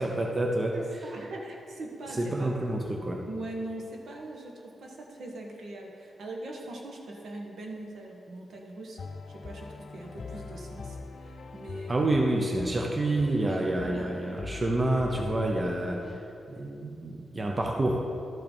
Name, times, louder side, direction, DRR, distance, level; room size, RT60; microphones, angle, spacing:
voice 1, 0.0-0.8 2.2-3.3 11.9-16.2 16.6-18.0, right 2 dB, 25° right, 1 dB, 0.8 m, -28 dB
voice 2, 0.7-2.5 3.3-9.0 9.3-12.1 13.4-14.1, right 1 dB, 70° right, 0 dB, 1.3 m, -41 dB
sound 1, 9.0-16.2, left 4 dB, 55° left, 0.4 m, -42 dB
12.5 x 5.7 x 4.5 m, 2.6 s
wide cardioid pair, 110°, 0 cm